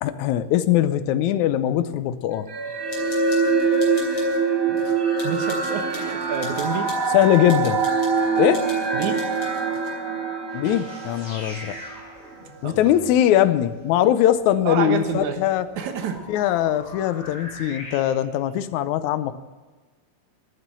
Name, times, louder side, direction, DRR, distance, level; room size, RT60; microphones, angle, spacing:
voice 1, 0.0-2.5 7.1-7.8 8.4-8.6 10.5-11.7 12.6-15.7 16.3-19.3, left 12 dB, 75° left, 11 dB, 1.9 m, -21 dB
sound 1, 2.5-12.0, right 4 dB, 30° right, 1.8 m, -24 dB
sound 2, 2.9-4.4 4.8-9.9, left 2 dB, 45° left, 3.9 m, -42 dB
voice 2, 5.2-6.9 8.9-9.2 12.6-12.8 14.7-15.4 15.8-16.2, right 7 dB, 65° right, 6 dB, 2.5 m, -28 dB
sound 3, 10.5-18.0, left 1 dB, 20° left, 4.7 m, -42 dB
12.5 x 9.4 x 7.6 m, 1.3 s
omnidirectional pair, 3.8 m